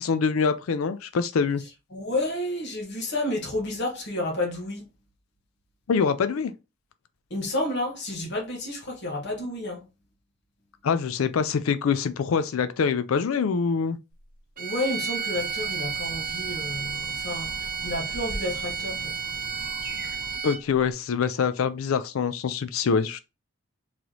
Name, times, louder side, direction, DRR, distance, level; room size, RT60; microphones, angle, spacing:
voice 1, 0.0-1.6 5.9-6.5 10.8-14.0 20.4-23.2, left 6 dB, 80° left, 0.4 m, -25 dB
voice 2, 1.9-4.9 7.3-9.8 14.6-19.2, left 1 dB, 55° left, 1.1 m, -30 dB
sound 1, 14.6-20.8, right 6 dB, 40° right, 0.7 m, -32 dB
sound 2, 15.3-20.4, right 1 dB, 10° right, 0.9 m, -42 dB
3.2 x 3.0 x 3.8 m
head